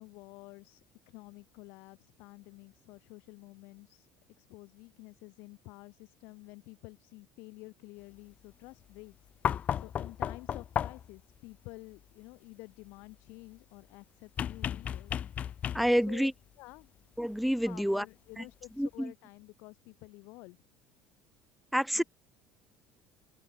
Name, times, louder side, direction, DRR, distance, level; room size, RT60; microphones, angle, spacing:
voice 1, 0.0-4.1 4.4-15.2 15.9-16.3 16.6-16.9 17.7-20.6 21.9-22.0, left 25 dB, 70° left, 5.5 m, -51 dB
sound 1, 9.4-11.2 14.4-16.1 17.7-17.8, left 9 dB, 45° left, 0.5 m, -34 dB
voice 2, 15.7-16.3 17.2-18.0 18.8-19.1 21.7-22.0, equal, ahead, 1.0 m, -28 dB
open air
hypercardioid pair, 80°, 4 cm